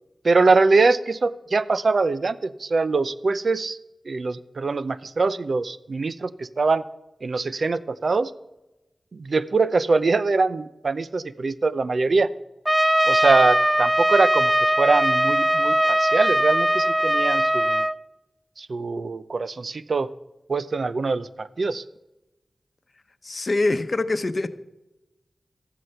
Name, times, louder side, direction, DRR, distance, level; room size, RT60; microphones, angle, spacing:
voice 1, 0.2-3.8 4.1-6.8 7.2-8.3 9.1-12.3 13.1-17.8 18.6-20.1 20.5-21.8, right 3 dB, 70° right, 15 dB, 0.6 m, -23 dB
Trumpet, 12.6-17.9, equal, 10° right, 0.5 m, -20 dB
voice 2, 23.2-24.5, left 2 dB, 50° left, 11 dB, 0.9 m, -24 dB
14.5 x 11.0 x 5.6 m, 0.96 s
cardioid pair, 50°, 0 cm